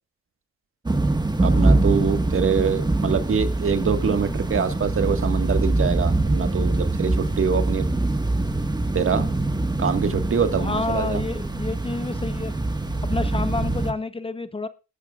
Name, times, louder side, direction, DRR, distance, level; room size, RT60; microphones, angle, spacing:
sound 1, 0.9-13.9, right 2 dB, 15° right, 1.5 m, -23 dB
voice 1, 1.4-7.8 8.9-9.3 9.8-11.2, right 6 dB, 45° right, 1.7 m, -24 dB
voice 2, 10.6-12.5 13.0-14.7, left 3 dB, 20° left, 1.0 m, -29 dB
20.5 x 12.5 x 2.5 m
cardioid pair, 90°, 30 cm